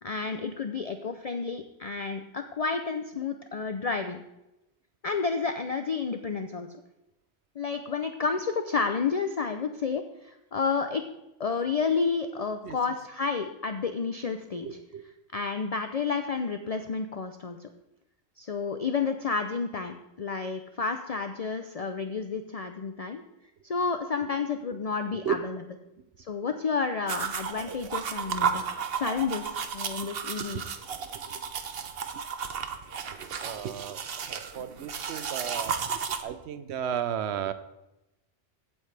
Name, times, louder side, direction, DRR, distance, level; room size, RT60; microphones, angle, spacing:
voice 1, 0.0-4.2 5.0-6.7 7.6-11.0 11.4-14.7 15.3-17.7 18.4-23.2 23.6-25.6 26.2-28.6 29.0-30.7, left 5 dB, 40° left, 7 dB, 0.6 m, -30 dB
voice 2, 14.6-15.1 25.2-25.4 30.5-30.6 31.1-31.4 33.4-37.5, right 9 dB, 90° right, 12 dB, 0.9 m, -34 dB
sound 1, 27.1-36.2, right 6 dB, 65° right, 1.0 m, -33 dB
15.5 x 8.8 x 3.4 m, 0.94 s
omnidirectional pair, 1.1 m